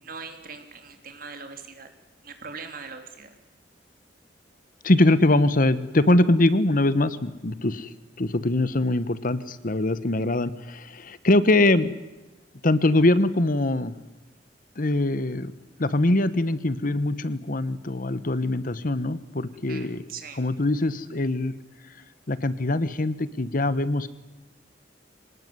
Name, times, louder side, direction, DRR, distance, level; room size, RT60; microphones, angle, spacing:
voice 1, 0.0-1.9 2.2-3.3 19.7-20.4, right 5 dB, 55° right, 6 dB, 3.4 m, -41 dB
voice 2, 4.8-7.9 8.2-12.0 12.6-13.9 14.8-15.5 15.8-20.0 20.4-21.5 22.3-24.1, left 2 dB, 50° left, 15 dB, 1.1 m, -22 dB
25.0 x 19.0 x 9.6 m, 1.1 s
head